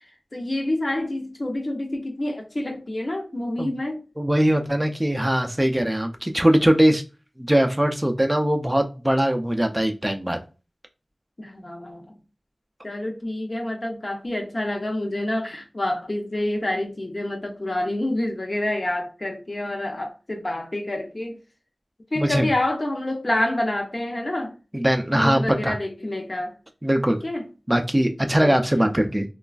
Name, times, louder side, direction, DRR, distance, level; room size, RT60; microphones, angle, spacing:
voice 1, 0.0-4.0 11.4-12.2 12.8-21.4 22.1-24.6 25.1-26.5 27.1-27.5 28.4-28.9, left 1 dB, 45° left, 0.7 m, -28 dB
voice 2, 4.2-7.0 7.4-10.4 22.2-22.5 24.7-25.8 26.8-27.2 27.7-29.2, right 1 dB, 15° right, 0.3 m, -21 dB
2.9 x 2.3 x 2.4 m
wide cardioid pair, 70°, 0 cm